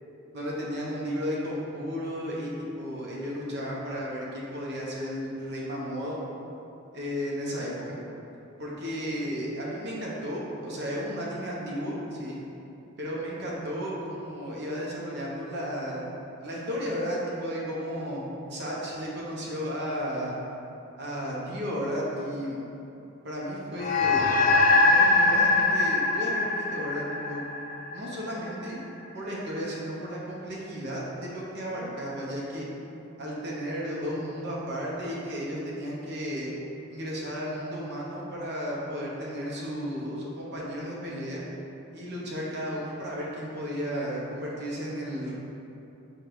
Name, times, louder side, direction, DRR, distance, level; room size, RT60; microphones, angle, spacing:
voice 1, 0.3-6.2 6.9-8.0 8.6-12.4 13.0-16.0 16.4-18.2 18.5-20.3 21.0-22.6 23.2-24.3 24.8-27.4 27.9-28.8 29.1-32.6 33.2-36.5 36.9-41.4 41.9-45.3, equal, 55° right, -5 dB, 0.9 m, -33 dB
sound 1, 23.8-28.5, left 3 dB, 45° left, 0.4 m, -23 dB
4.6 x 2.4 x 4.8 m, 2.9 s
head